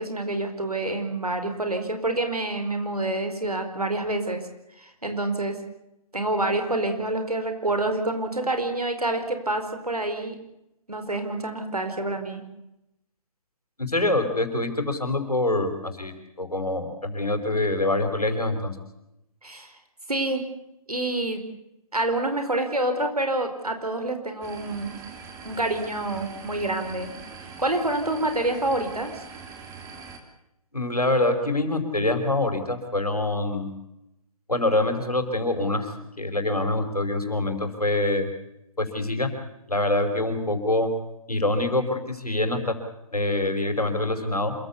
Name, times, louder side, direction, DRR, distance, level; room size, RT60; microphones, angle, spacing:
voice 1, 0.0-4.4 4.8-5.6 6.1-10.3 10.9-12.4 19.4-19.7 20.1-20.4 20.9-21.4 21.9-25.0 25.4-27.1 27.6-29.1, right 2 dB, 85° right, 7 dB, 4.9 m, -27 dB
voice 2, 13.8-18.8 30.7-33.7 34.5-38.3 38.8-39.3 39.7-40.9 41.3-42.7 43.1-44.5, left 2 dB, 90° left, 7 dB, 5.2 m, -25 dB
sound 1, 24.4-30.2, right 5 dB, 15° right, 2.8 m, -42 dB
27.0 x 15.0 x 8.4 m, 0.86 s
figure-of-eight pair, 135°, 19 cm